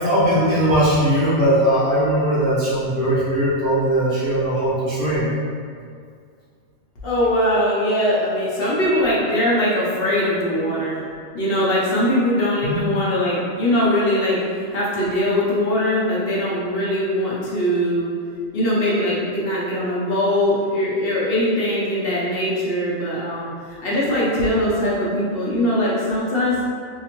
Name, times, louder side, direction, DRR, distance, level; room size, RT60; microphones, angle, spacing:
voice 1, 0.0-5.3 12.6-12.8, right 1 dB, 50° right, -8 dB, 0.8 m, -19 dB
voice 2, 7.0-11.0 11.3-18.1 18.5-23.5 23.8-26.6, left 1 dB, 55° left, -7 dB, 0.7 m, -21 dB
2.8 x 2.5 x 2.9 m, 2.2 s
omnidirectional pair, 1.4 m